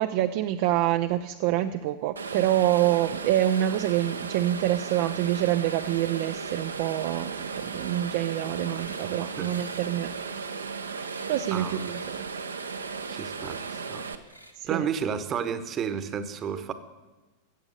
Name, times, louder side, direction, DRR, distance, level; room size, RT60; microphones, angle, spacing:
voice 1, 0.0-10.1 11.3-12.3 14.6-14.9, right 13 dB, 50° right, 8 dB, 0.4 m, -26 dB
sound 1, 2.2-14.2, right 5 dB, 75° right, 0.8 m, -36 dB
sound 2, 2.4-3.0 3.2-3.7 3.9-6.3 6.6-7.1 7.4-7.9 8.2-9.1 9.4-11.4 11.7-12.2 12.5-12.9 13.3-13.8 14.2-14.5, right 1 dB, 90° right, 1.2 m, -52 dB
voice 2, 11.5-12.0 13.1-14.1 14.7-16.7, right 7 dB, 30° right, 11 dB, 1.0 m, -32 dB
14.0 x 8.0 x 6.6 m, 1.2 s
figure-of-eight pair, 90°, 0 cm